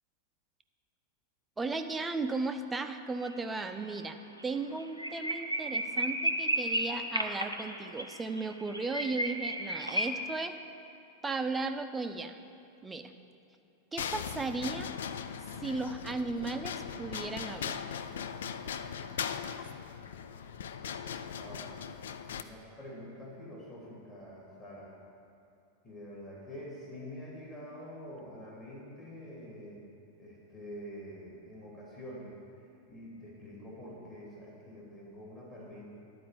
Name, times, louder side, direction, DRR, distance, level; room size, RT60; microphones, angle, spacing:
voice 1, 1.6-4.2 4.4-10.6 11.2-12.4 12.8-13.1 13.9-14.9 15.6-17.9, right 3 dB, 10° right, 7 dB, 0.5 m, -35 dB
sound 1, 3.3-3.6 3.9-4.0 4.4-4.5 4.8-10.1, right 1 dB, 85° right, 0.7 m, -33 dB
sound 2, 14.0-22.4, left 7 dB, 60° left, 0.4 m, -39 dB
voice 2, 21.3-21.7 22.3-24.9 25.8-29.8 30.2-32.4 32.9-35.9, equal, 30° left, -6 dB, 2.7 m, -46 dB
11.0 x 4.7 x 8.1 m, 2.6 s
figure-of-eight pair, 90°, 0 cm